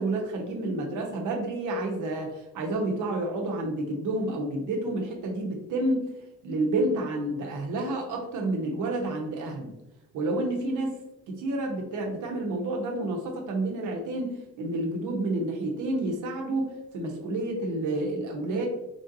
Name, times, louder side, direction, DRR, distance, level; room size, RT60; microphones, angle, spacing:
voice 1, 0.0-6.1 6.4-9.7 10.1-11.0 11.3-18.7, right 2 dB, 80° right, 1 dB, 0.8 m, -29 dB
3.4 x 2.6 x 2.6 m, 0.90 s
cardioid pair, 90°, 30 cm